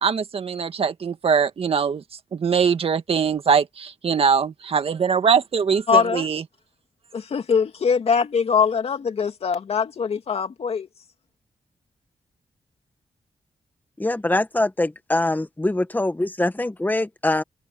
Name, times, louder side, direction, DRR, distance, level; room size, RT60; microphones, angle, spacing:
voice 1, 0.0-2.0 2.3-6.4, right 6 dB, 55° right, 1.8 m, -22 dB
voice 2, 5.9-6.3 7.1-10.9, left 6 dB, 60° left, 2.5 m, -22 dB
voice 3, 14.0-17.4, left 2 dB, 15° left, 1.8 m, -23 dB
open air
cardioid pair, 85°, 11 cm